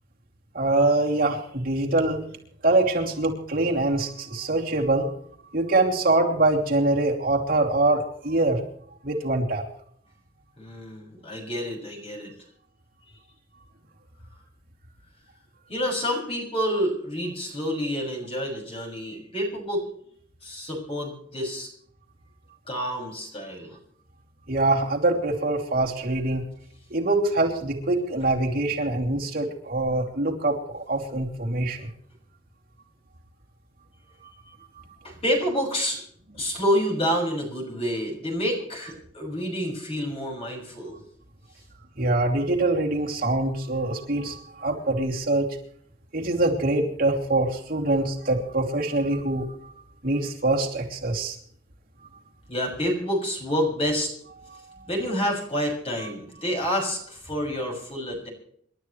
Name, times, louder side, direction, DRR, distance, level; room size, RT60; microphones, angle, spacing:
voice 1, 0.5-2.2 2.6-5.1 5.5-8.6 9.0-9.6 24.5-26.4 26.9-31.9 42.0-45.5 46.1-49.7 50.0-51.4 54.5-54.6, right 2 dB, 50° right, -1 dB, 2.8 m, -24 dB
voice 2, 10.6-12.3 15.7-19.9 20.4-21.7 22.7-23.8 35.0-36.0 36.3-41.0 52.5-54.1 54.9-58.3, equal, 30° left, 1 dB, 6.4 m, -28 dB
28.5 x 12.0 x 3.2 m, 0.65 s
head